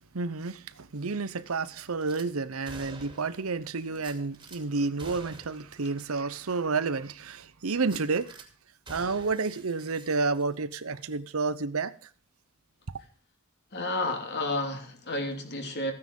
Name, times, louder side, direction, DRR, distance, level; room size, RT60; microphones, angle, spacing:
voice 1, 0.1-8.4 8.9-11.9 12.9-13.0, right 4 dB, 75° right, 0.8 m, -30 dB
Gunshot gunfire / Glass, 2.0-2.3 2.7-3.4 4.0-4.6 5.0-5.7 6.0-6.1 6.5-6.6 7.8-8.5 8.9-10.7 11.0-11.2, right 3 dB, 20° right, 2.4 m, -47 dB
voice 2, 13.7-15.9, left 2 dB, 55° left, 2.9 m, -31 dB
15.0 x 9.7 x 5.3 m
head